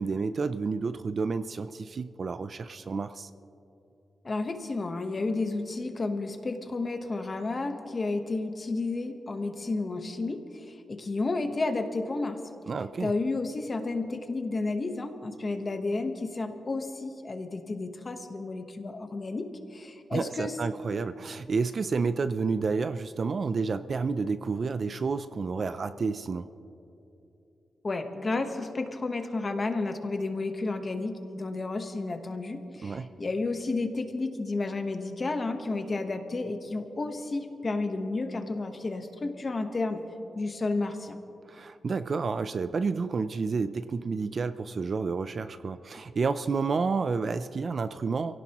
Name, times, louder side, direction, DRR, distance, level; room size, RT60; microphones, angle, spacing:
voice 1, 0.0-3.3 12.7-13.1 20.1-26.5 32.8-33.1 41.5-48.4, right 4 dB, 40° right, 12 dB, 0.4 m, -30 dB
voice 2, 4.2-12.4 13.0-20.6 27.8-40.0 40.3-41.2, left 3 dB, 30° left, 6 dB, 1.1 m, -32 dB
27.5 x 17.0 x 3.0 m, 2.8 s
wide cardioid pair, 170°, 0 cm